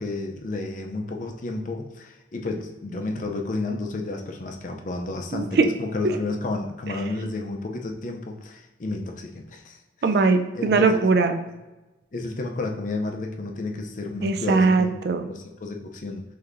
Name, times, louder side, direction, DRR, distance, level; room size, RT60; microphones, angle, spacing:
voice 1, 0.0-9.8 10.5-11.0 12.1-14.9 15.2-16.2, left 2 dB, 45° left, 3 dB, 0.5 m, -31 dB
voice 2, 5.3-5.7 6.0-6.2 10.0-11.4 14.2-15.3, right 4 dB, 60° right, 7 dB, 0.3 m, -20 dB
6.6 x 2.7 x 2.5 m, 1.1 s
head